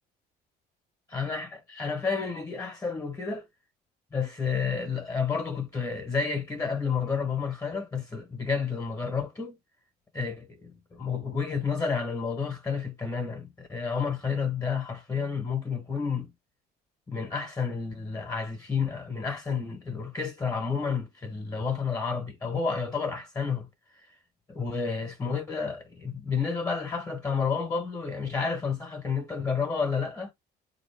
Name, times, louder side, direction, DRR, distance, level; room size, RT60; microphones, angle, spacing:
voice 1, 1.1-3.4 4.1-9.6 10.1-16.3 17.1-23.7 24.5-30.3, left 5 dB, 20° left, 0.9 m, -30 dB
3.8 x 2.8 x 3.2 m
cardioid pair, 115°, 17 cm